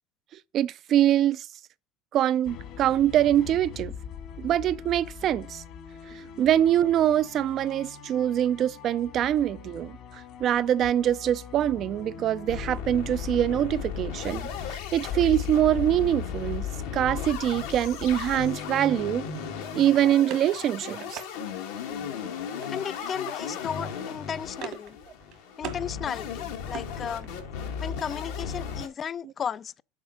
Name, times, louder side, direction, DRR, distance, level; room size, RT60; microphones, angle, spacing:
voice 1, 0.5-1.5 2.1-3.9 4.4-5.6 6.4-10.0 10.4-14.5 14.9-16.7 16.9-19.3 19.7-21.2, right 11 dB, 50° right, 0.4 m, -24 dB
sound 1, 2.4-18.5, left 8 dB, 60° left, 1.7 m, -42 dB
sound 2, 10.4-11.3 11.6-11.7 12.0-12.1 12.5-28.9, left 7 dB, 85° left, 1.8 m, -35 dB
sound 3, 19.9-21.3 22.6-23.0 23.3-23.6 23.9-24.9 25.2-25.8 26.2-27.5, right 8 dB, 65° right, 1.5 m, -42 dB
voice 2, 22.7-25.0 25.6-27.3 27.8-29.8, left 7 dB, 35° left, 0.4 m, -34 dB
7.3 x 4.3 x 6.4 m
supercardioid pair, 105°, 0 cm